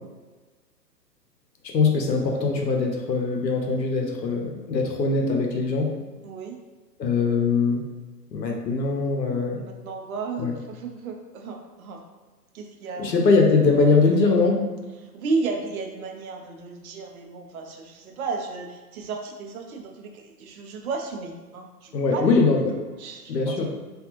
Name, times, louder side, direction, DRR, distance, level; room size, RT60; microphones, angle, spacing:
voice 1, 1.6-5.9 7.0-7.8 8.3-9.6 10.4-10.5 13.0-14.6 21.9-22.8 23.3-23.7, left 4 dB, 80° left, 2 dB, 0.8 m, -22 dB
voice 2, 6.2-6.6 9.5-12.0 12.5-13.1 15.0-22.4 23.0-23.6, right 4 dB, 60° right, 3 dB, 0.7 m, -33 dB
3.4 x 2.3 x 2.9 m, 1.3 s
hypercardioid pair, 125°, 50 cm